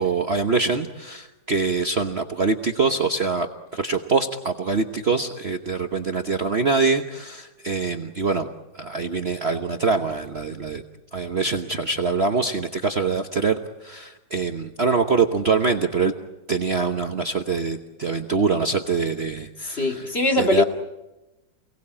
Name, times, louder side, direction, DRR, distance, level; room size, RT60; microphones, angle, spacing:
voice 1, 0.0-3.5 3.7-8.5 8.7-10.8 11.1-16.1 16.5-20.0 20.4-20.6, right 4 dB, 40° right, 5 dB, 1.1 m, -24 dB
voice 2, 19.6-20.6, left 1 dB, 35° left, 3 dB, 2.3 m, -21 dB
28.5 x 18.5 x 8.7 m, 1.0 s
omnidirectional pair, 2.0 m